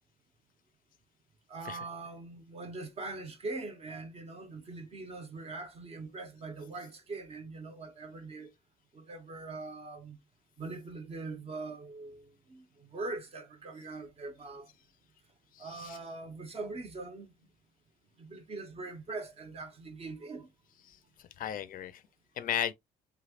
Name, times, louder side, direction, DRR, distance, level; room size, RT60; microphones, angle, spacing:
voice 1, 1.5-8.5 8.9-10.2 10.6-14.7 15.6-17.3 18.2-20.5, right 3 dB, 35° right, 1.1 m, -42 dB
voice 2, 15.5-16.0 20.9-21.0 21.4-22.0 22.4-22.7, left 10 dB, 55° left, 0.5 m, -35 dB
3.5 x 3.2 x 2.4 m
cardioid pair, 110°, 17 cm